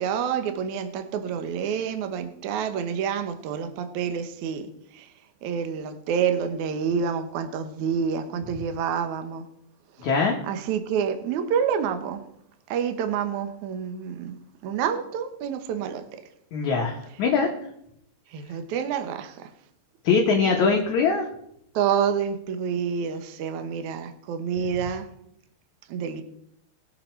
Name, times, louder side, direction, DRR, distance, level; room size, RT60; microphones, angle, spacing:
voice 1, 0.0-5.1 5.4-9.4 10.4-12.2 12.7-16.2 18.3-19.5 21.7-25.1 25.9-26.2, right 7 dB, 75° right, 1.7 m, -28 dB
voice 2, 10.0-10.4 16.5-17.5 20.0-21.3, left 5 dB, 65° left, 1.9 m, -22 dB
21.0 x 7.1 x 4.5 m
omnidirectional pair, 5.0 m